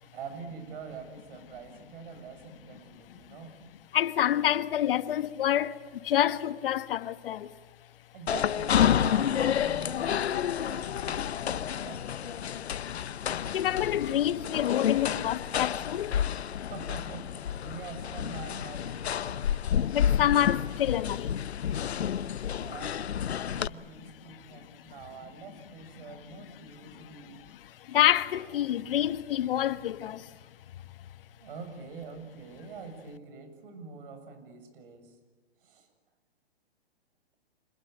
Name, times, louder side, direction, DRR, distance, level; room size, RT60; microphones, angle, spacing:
voice 1, 0.0-3.6 8.1-12.5 16.6-19.6 22.5-27.4 31.4-35.2 35.6-35.9, right 5 dB, 55° right, 7.0 m, -45 dB
voice 2, 3.9-5.7 6.1-7.5 13.5-16.1 19.9-21.3 27.9-30.2, left 11 dB, 60° left, 1.4 m, -27 dB
sound 1, 8.3-23.7, left 9 dB, 80° left, 0.9 m, -30 dB
26.0 x 21.5 x 9.0 m
hypercardioid pair, 135°, 32 cm